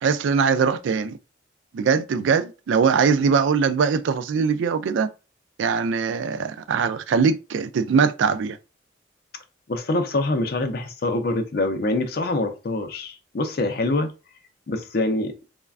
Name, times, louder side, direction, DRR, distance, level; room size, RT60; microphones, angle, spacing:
voice 1, 0.0-1.2 1.7-5.1 5.6-8.6, right 5 dB, 75° right, 0.3 m, -21 dB
voice 2, 9.7-14.1 14.7-15.4, left 2 dB, 50° left, 0.4 m, -25 dB
3.2 x 2.1 x 2.3 m
head